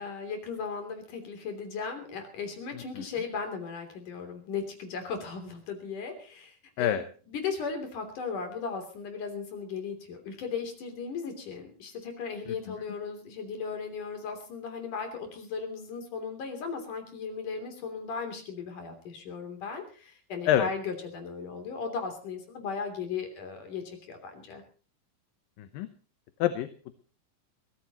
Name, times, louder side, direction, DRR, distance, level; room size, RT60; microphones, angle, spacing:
voice 1, 0.0-7.0 7.3-24.6, left 5 dB, 60° left, 6 dB, 4.6 m, -37 dB
voice 2, 25.6-25.9 26.4-26.7, left 11 dB, 75° left, 10 dB, 2.6 m, -26 dB
23.0 x 16.0 x 3.0 m, 0.39 s
omnidirectional pair, 4.2 m